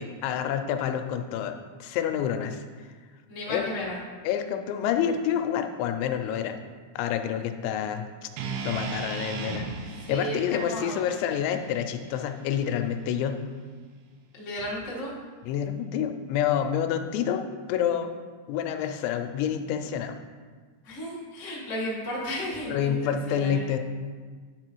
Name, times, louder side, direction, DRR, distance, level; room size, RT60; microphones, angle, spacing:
voice 1, 0.0-1.5 1.8-2.6 3.5-3.8 4.2-6.5 7.0-8.1 8.6-9.6 10.1-13.4 15.4-17.4 17.7-18.1 18.5-20.2 22.6-23.8, left 9 dB, 85° left, 6 dB, 2.9 m, -28 dB
voice 2, 3.3-4.0 9.7-11.0 14.4-15.1 20.8-23.7, equal, 65° left, -7 dB, 0.7 m, -34 dB
sound 1, 8.4-12.5, right 5 dB, 85° right, 3.0 m, -37 dB
9.8 x 4.8 x 4.6 m, 1.5 s
omnidirectional pair, 5.2 m